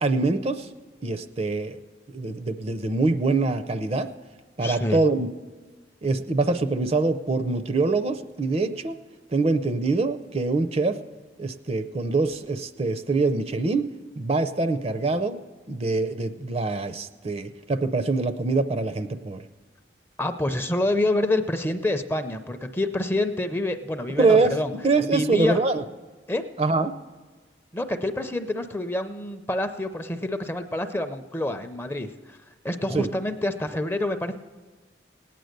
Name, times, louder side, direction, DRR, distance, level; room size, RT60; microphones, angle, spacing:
voice 1, 0.0-0.7 1.0-1.8 2.1-4.1 4.6-5.3 6.0-9.0 9.3-11.0 11.4-13.9 14.2-15.4 15.7-19.4 24.2-25.8 26.6-26.9 32.9-33.1, right 3 dB, 35° right, 11 dB, 0.5 m, -24 dB
voice 2, 4.6-5.0 20.2-24.7 25.1-25.6 26.3-26.4 27.7-32.4 32.6-34.4, left 1 dB, 10° left, 8 dB, 0.5 m, -27 dB
17.5 x 9.2 x 6.6 m, 1.3 s
head